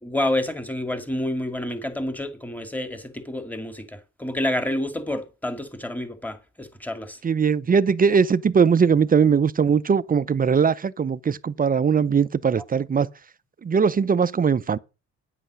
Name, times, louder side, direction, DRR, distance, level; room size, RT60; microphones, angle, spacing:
voice 1, 0.0-7.2, left 1 dB, 5° left, 2.1 m, -29 dB
voice 2, 7.2-13.1 13.6-14.8, right 6 dB, 30° right, 0.6 m, -20 dB
10.0 x 7.9 x 6.2 m
cardioid pair, 90°, 30 cm